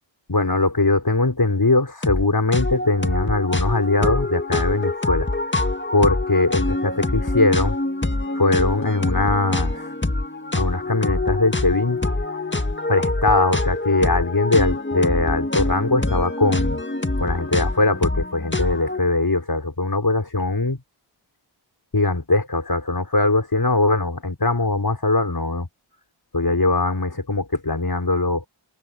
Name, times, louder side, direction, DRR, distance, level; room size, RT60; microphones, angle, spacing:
voice 1, 0.3-5.7 5.9-7.8 8.3-9.9 10.5-12.0 12.9-16.8 17.2-20.8 21.9-25.7 26.3-28.5, left 2 dB, 50° left, 4.9 m, -21 dB
sound 1, 2.0-2.2 2.5-19.0, left 2 dB, 25° left, 1.8 m, -25 dB
wide cardioid pair, 40°, 48 cm